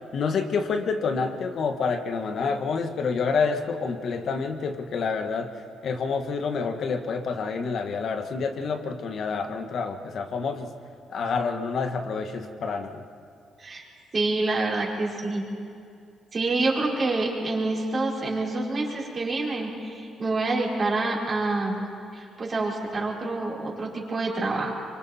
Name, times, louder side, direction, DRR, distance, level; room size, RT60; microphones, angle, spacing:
voice 1, 0.1-5.5 5.8-10.7 11.1-13.0, left 5 dB, 60° left, 6 dB, 1.5 m, -28 dB
voice 2, 14.1-15.4 16.3-21.8 22.1-24.7, right 2 dB, 35° right, -4 dB, 4.9 m, -27 dB
25.5 x 24.0 x 4.4 m, 2.4 s
cardioid pair, 90°, 0 cm